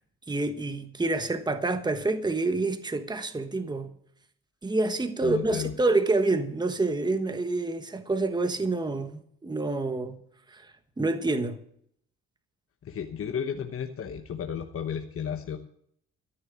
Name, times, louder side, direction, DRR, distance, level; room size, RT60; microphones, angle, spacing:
voice 1, 0.3-3.9 4.6-10.2 10.5-10.7 11.0-11.6, right 2 dB, 15° right, 1.2 m, -27 dB
voice 2, 5.2-5.7 12.8-15.6, left 8 dB, 50° left, 1.1 m, -33 dB
13.5 x 6.5 x 8.9 m
cardioid pair, 90°, 30 cm